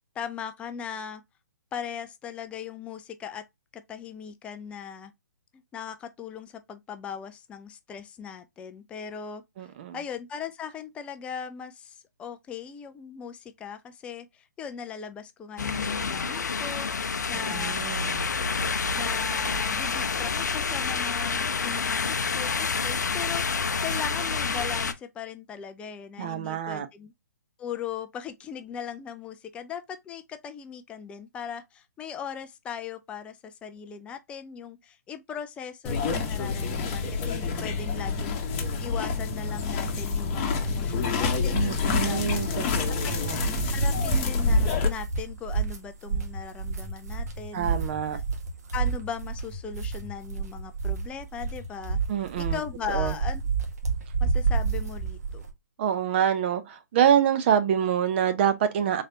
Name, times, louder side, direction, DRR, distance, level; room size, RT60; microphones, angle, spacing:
voice 1, 0.2-1.2 1.7-3.4 3.7-5.1 5.5-9.4 9.9-17.8 18.9-27.1 27.6-42.2 43.0-47.7 48.1-48.2 48.7-52.0 52.4-53.4 54.2-55.4, left 7 dB, 10° left, 0.3 m, -39 dB
voice 2, 9.6-10.0 17.3-18.3 26.2-26.9 41.5-43.4 47.5-48.2 52.1-52.6 52.9-53.1 55.8-59.0, right 9 dB, 40° right, 0.6 m, -26 dB
sound 1, 15.6-24.9, left 5 dB, 75° left, 0.6 m, -28 dB
sound 2, 35.8-44.9, left 4 dB, 30° left, 0.9 m, -27 dB
sound 3, 43.2-55.5, right 5 dB, 60° right, 1.3 m, -30 dB
3.9 x 3.2 x 2.7 m
figure-of-eight pair, 135°, 10 cm